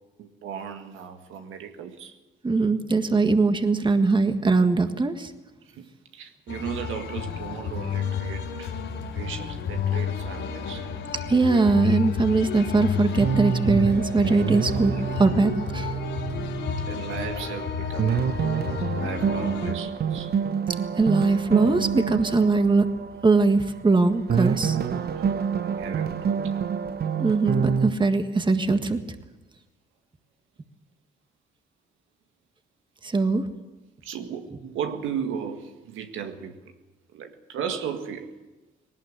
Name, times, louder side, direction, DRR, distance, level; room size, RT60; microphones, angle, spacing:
voice 1, 0.2-2.2 5.8-5.9 6.1-8.7 9.1-10.8 16.0-16.2 16.8-18.3 18.9-20.3 25.1-25.2 25.6-26.6 34.0-36.7 37.1-38.3, right 7 dB, 85° right, 6 dB, 1.8 m, -36 dB
voice 2, 2.4-5.3 11.3-14.9 15.2-15.9 21.0-22.9 23.2-24.8 27.2-29.0 33.0-33.4, right 3 dB, 25° right, 7 dB, 1.6 m, -21 dB
sound 1, 6.5-19.7, left 7 dB, 70° left, 4.1 m, -31 dB
sound 2, 13.2-17.4 17.8-23.9 24.3-27.9, right 7 dB, 50° right, 1.0 m, -28 dB
19.5 x 18.0 x 8.1 m, 1.1 s
cardioid pair, 90°, 20 cm